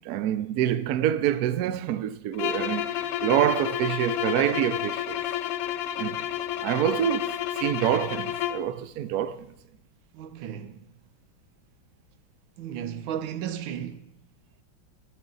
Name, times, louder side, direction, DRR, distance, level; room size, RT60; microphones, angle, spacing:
voice 1, 0.0-5.2 6.0-6.3 6.6-9.5, right 11 dB, 70° right, 0.9 m, -26 dB
sound 1, 2.3-8.7, left 12 dB, 80° left, 1.3 m, -30 dB
voice 2, 10.1-10.9 12.6-14.1, right 9 dB, 85° right, 1.5 m, -34 dB
21.5 x 7.6 x 3.9 m
omnidirectional pair, 2.1 m